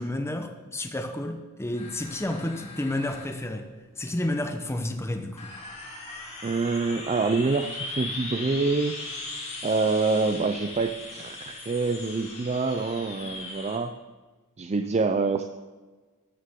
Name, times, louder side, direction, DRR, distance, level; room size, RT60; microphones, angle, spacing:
voice 1, 0.0-3.7 4.0-5.5, left 1 dB, 10° left, 6 dB, 0.8 m, -31 dB
sound 1, 1.8-13.8, left 2 dB, 30° left, 2.8 m, -39 dB
voice 2, 6.4-8.9 9.6-13.9 14.6-15.5, right 3 dB, 30° right, 8 dB, 0.5 m, -26 dB
13.0 x 12.5 x 3.7 m, 1.4 s
head